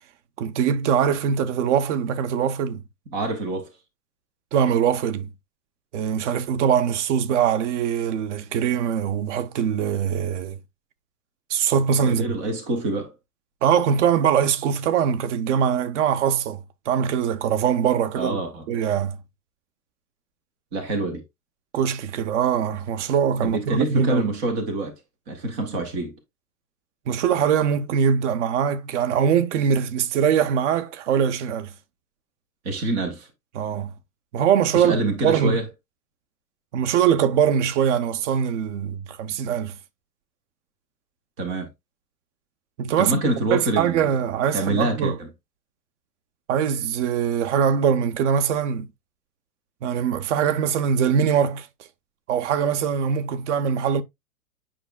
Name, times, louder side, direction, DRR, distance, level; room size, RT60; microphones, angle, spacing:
voice 1, 0.4-2.8 4.5-5.3 5.9-10.6 11.5-12.4 13.6-16.6 16.9-18.4 18.7-19.2 21.7-24.3 27.1-31.7 33.5-33.9 34.3-35.0 35.2-35.6 36.7-39.8 42.8-43.2 43.5-45.2 46.5-48.9 49.8-51.7 52.3-54.0, right 8 dB, 50° right, 0.8 m, -22 dB
voice 2, 3.1-3.7 12.0-13.1 18.2-18.7 20.7-21.2 23.5-25.0 25.3-26.1 32.6-33.3 34.7-35.7 41.4-41.7 43.0-44.1 44.5-45.3, right 2 dB, 10° right, 0.3 m, -26 dB
8.9 x 4.9 x 2.3 m
hypercardioid pair, 110°, 47 cm